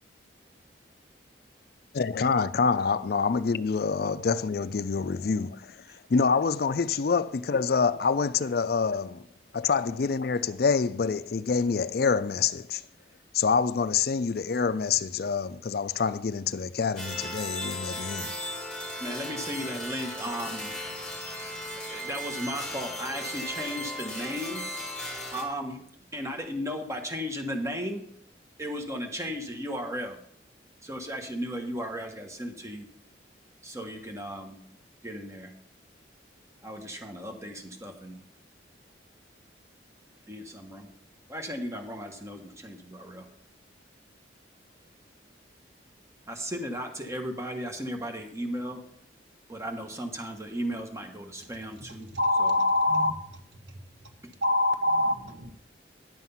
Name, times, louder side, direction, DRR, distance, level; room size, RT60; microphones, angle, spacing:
voice 1, 1.9-5.8 6.1-9.2 9.5-12.8 13.3-18.3, left 5 dB, 55° left, 0.4 m, -26 dB
sound 1, 17.0-25.4, left 1 dB, 5° left, 2.4 m, -36 dB
voice 2, 19.0-20.7 21.7-24.6 25.3-25.8 26.1-28.1 28.6-30.2 30.8-32.9 33.6-34.6 35.0-35.5 36.6-38.2 40.3-40.9 41.3-43.3 46.3-48.8 49.5-52.1 52.4-52.6 54.2-54.3, equal, 15° right, 1.3 m, -35 dB
voice 3, 52.1-53.1 54.4-55.5, left 2 dB, 80° right, 1.3 m, -24 dB
10.5 x 7.6 x 5.6 m
head